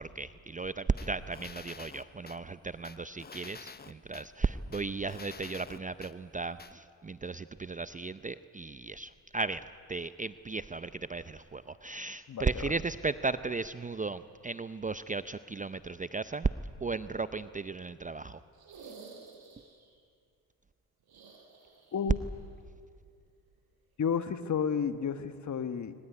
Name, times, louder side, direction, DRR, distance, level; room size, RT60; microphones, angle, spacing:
voice 1, 0.0-9.6 9.9-16.5 16.8-18.4, right 4 dB, 20° right, 14 dB, 0.6 m, -35 dB
sound 1, 1.0-2.4 2.8-4.3 4.7-6.1 6.6-6.7, left 5 dB, 20° left, 0.9 m, -48 dB
voice 2, 12.3-12.7 21.9-22.2 24.0-25.9, left 7 dB, 40° left, 11 dB, 1.5 m, -32 dB
sound 2, 18.5-19.9 21.0-22.2 22.5-22.6 24.2-24.3, right 4 dB, 55° right, 7.6 m, -52 dB
22.5 x 20.0 x 9.6 m, 2.2 s
supercardioid pair, 75°, 44 cm